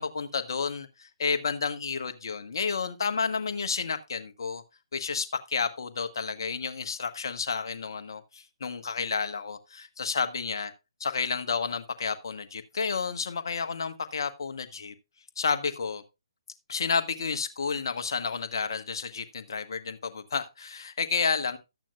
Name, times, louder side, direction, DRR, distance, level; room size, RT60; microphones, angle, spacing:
voice 1, 0.0-4.6 4.9-10.7 11.0-14.9 15.4-16.0 16.7-21.6, left 5 dB, 55° left, 1.3 m, -31 dB
13.0 x 9.0 x 2.4 m
figure-of-eight pair, 135°, 3 cm